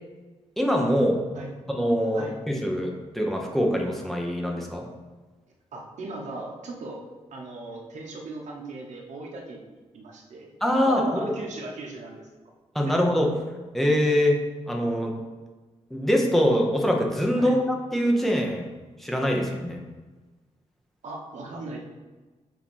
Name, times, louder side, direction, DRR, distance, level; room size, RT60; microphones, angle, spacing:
voice 1, 0.6-1.2 1.7-4.8 10.6-11.3 12.7-13.3 13.7-14.4 14.7-15.1 15.9-17.7 17.9-18.7 19.0-19.8, equal, ahead, 0 dB, 0.8 m, -23 dB
voice 2, 5.7-7.0 7.3-10.5 10.8-12.3 12.9-13.0 17.3-17.6 21.0-21.8, right 2 dB, 80° right, -1 dB, 1.2 m, -38 dB
7.3 x 2.8 x 5.5 m, 1.3 s
wide cardioid pair, 145°, 12 cm